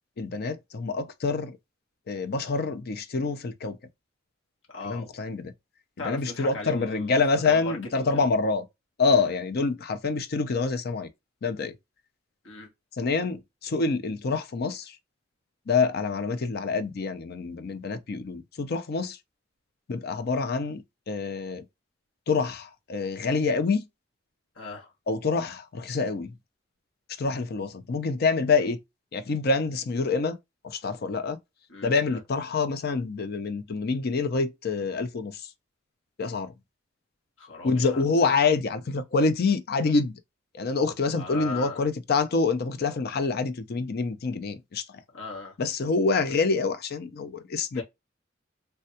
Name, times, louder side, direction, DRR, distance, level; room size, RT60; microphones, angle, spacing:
voice 1, 0.2-1.6 2.1-3.8 4.8-5.5 6.0-8.6 9.0-11.1 11.4-11.7 13.0-15.0 15.7-19.2 19.9-21.6 22.3-23.9 25.1-26.3 27.2-28.8 29.1-30.4 30.6-31.4 31.8-35.5 36.2-36.5 37.6-40.1 40.5-45.0 45.6-47.8, left 4 dB, 55° left, 0.5 m, -26 dB
voice 2, 4.7-5.1 6.0-7.2 7.4-8.2 9.1-9.3 12.4-12.7 24.5-24.9 31.7-31.9 37.4-38.0 41.2-41.8 45.1-45.6 47.7-47.8, left 3 dB, 75° left, 1.2 m, -38 dB
3.3 x 2.3 x 2.7 m
head